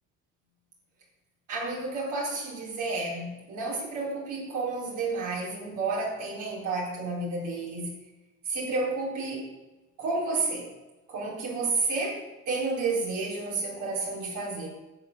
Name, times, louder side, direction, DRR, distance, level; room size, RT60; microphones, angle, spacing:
voice 1, 1.5-7.9 8.5-9.5 10.0-10.7 11.1-14.7, right 3 dB, 90° right, -2 dB, 4.2 m, -31 dB
11.0 x 8.0 x 8.1 m, 1.1 s
cardioid pair, 90°, 30 cm